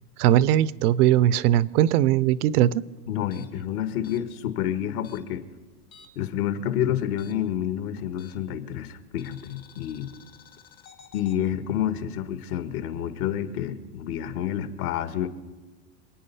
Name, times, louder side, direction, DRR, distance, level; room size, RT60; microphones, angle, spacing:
voice 1, 0.2-2.8, right 12 dB, 65° right, 20 dB, 0.7 m, -20 dB
voice 2, 3.1-5.4 6.1-10.1 11.1-15.3, left 10 dB, 60° left, 11 dB, 1.6 m, -29 dB
sound 1, 3.2-6.3 6.6-8.6 9.2-11.4, left 8 dB, 90° left, 1.8 m, -52 dB
27.0 x 9.2 x 5.6 m, 1.3 s
supercardioid pair, 140°, 49 cm